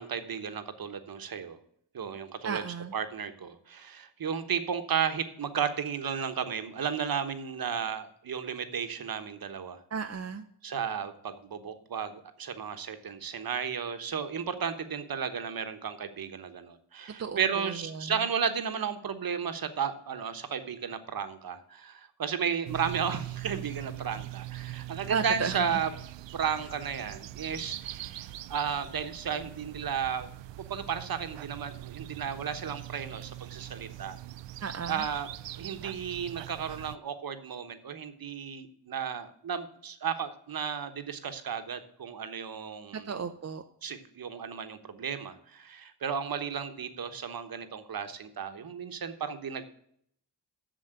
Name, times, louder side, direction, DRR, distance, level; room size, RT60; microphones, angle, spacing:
voice 1, 0.0-1.6 1.9-2.6 2.9-9.8 10.6-25.9 26.3-30.3 30.6-34.2 34.9-35.3 35.6-43.1 43.8-49.7, right 7 dB, 55° right, 9 dB, 1.2 m, -34 dB
voice 2, 2.4-2.9 9.9-10.4 17.2-18.1 25.1-25.8 34.6-35.0 42.9-43.6, right 6 dB, 35° right, 6 dB, 0.6 m, -34 dB
sound 1, 22.6-36.9, right 15 dB, 85° right, 0.5 m, -42 dB
7.7 x 7.0 x 8.0 m, 0.68 s
wide cardioid pair, 130°, 42 cm